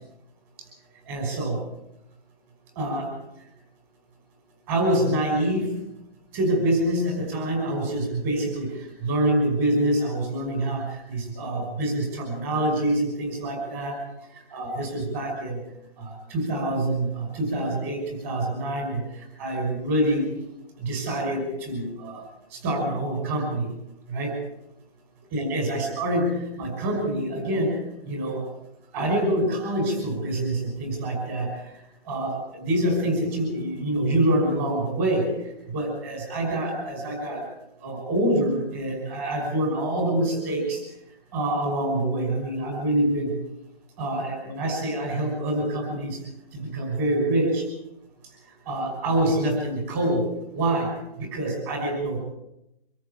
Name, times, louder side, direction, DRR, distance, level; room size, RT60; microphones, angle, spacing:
voice 1, 1.1-1.6 2.8-3.1 4.7-5.8 6.3-14.0 14.3-15.6 16.0-20.3 20.8-22.2 22.5-23.7 24.1-24.3 25.3-28.4 28.9-31.6 32.0-35.3 35.7-37.5 37.8-40.8 41.3-43.3 44.0-46.2 46.5-47.6 48.7-50.9 51.2-52.2, right 1 dB, 15° right, 3 dB, 5.8 m, -26 dB
25.0 x 14.0 x 8.5 m, 0.84 s
hypercardioid pair, 170°, 30 cm